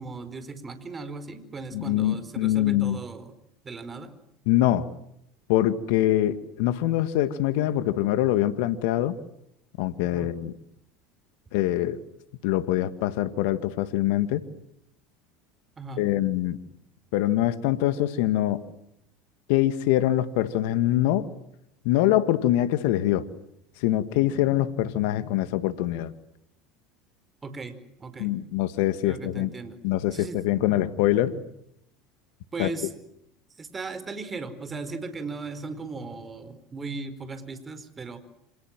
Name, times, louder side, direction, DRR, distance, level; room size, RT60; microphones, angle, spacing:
voice 1, 0.0-3.3 3.6-4.1 10.0-10.3 15.8-16.1 27.4-28.3 29.0-29.8 30.1-30.4 32.5-32.9 33.5-38.2, right 3 dB, 25° right, 11 dB, 4.8 m, -37 dB
voice 2, 1.7-3.0 4.5-4.9 5.5-9.2 9.8-10.5 11.5-12.0 12.4-14.5 16.0-16.6 17.1-18.6 19.5-21.3 21.9-23.3 23.8-26.1 28.2-29.5 29.8-31.4 32.6-32.7, left 13 dB, 70° left, 13 dB, 2.0 m, -24 dB
28.0 x 27.0 x 7.6 m, 0.75 s
hypercardioid pair, 80°, 0 cm